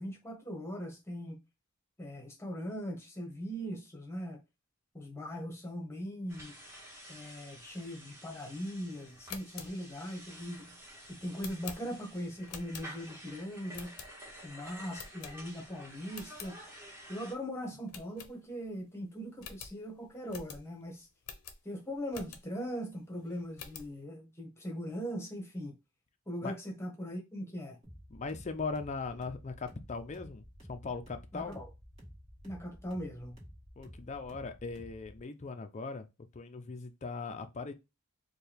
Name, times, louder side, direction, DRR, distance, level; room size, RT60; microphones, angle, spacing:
voice 1, 0.0-1.4 2.0-4.4 4.9-6.6 7.1-10.8 11.1-14.0 14.4-16.6 17.1-21.1 21.6-25.7 26.3-27.8 31.3-31.6 32.4-33.4, equal, 10° left, 1.0 m, -40 dB
sound 1, 6.3-17.3, equal, 10° right, 1.1 m, -51 dB
sound 2, 9.1-13.3 13.7-14.5 14.9-15.7 16.0-16.5 17.0-17.1 17.3-17.4 17.9-18.8 19.0-19.1 19.4-22.7 23.1-24.0, left 7 dB, 90° left, 0.7 m, -48 dB
sound 3, 27.8-35.2, equal, 30° right, 1.5 m, -52 dB
voice 2, 28.1-31.5 33.8-36.1 36.3-37.7, left 4 dB, 30° left, 0.4 m, -39 dB
4.4 x 2.3 x 3.4 m
head